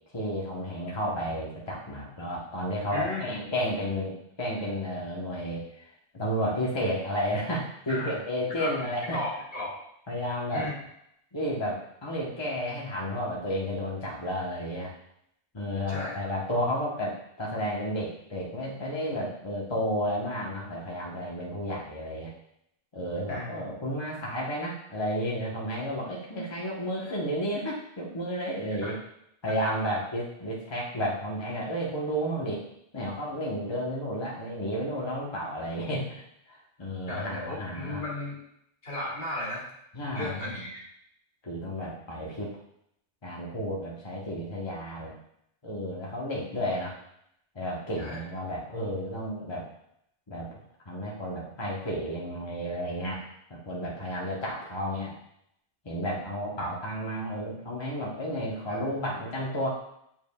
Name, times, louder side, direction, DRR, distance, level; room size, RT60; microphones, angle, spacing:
voice 1, 0.1-5.8 6.1-9.2 10.1-10.7 11.3-14.9 15.5-22.3 22.9-29.0 29.4-32.6 32.9-36.2 36.5-38.0 39.9-40.7 41.4-42.6 43.2-45.2 45.6-46.9 47.5-49.7 50.3-50.5 50.9-55.2 55.8-59.7, equal, 25° left, -4 dB, 1.1 m, -32 dB
voice 2, 2.9-3.4 7.9-8.2 8.6-8.7 9.1-9.8 10.5-10.7 15.9-16.1 23.3-23.6 28.8-29.0 29.5-29.6 37.1-38.4 38.8-39.7 40.1-40.7 48.0-48.2 56.6-56.7 58.7-58.8, left 2 dB, 55° left, -6 dB, 2.1 m, -35 dB
9.0 x 5.2 x 2.4 m, 0.75 s
omnidirectional pair, 1.1 m